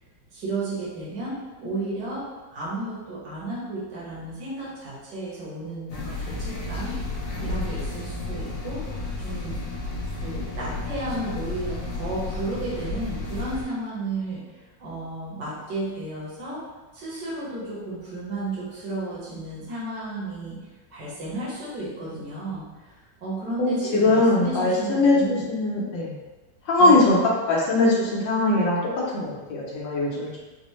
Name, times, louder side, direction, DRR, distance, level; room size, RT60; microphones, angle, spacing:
voice 1, 0.3-2.3 2.5-7.0 7.4-8.8 9.2-9.6 10.2-14.4 14.8-16.6 16.9-20.7 20.9-25.5 26.8-27.0, right 2 dB, 70° right, -8 dB, 1.7 m, -33 dB
sound 1, 5.9-13.6, left 2 dB, 60° left, 1.4 m, -32 dB
voice 2, 23.6-26.1 26.7-27.2 27.5-30.4, left 2 dB, 80° left, -3 dB, 1.5 m, -21 dB
4.3 x 2.1 x 3.0 m, 1.2 s
omnidirectional pair, 2.0 m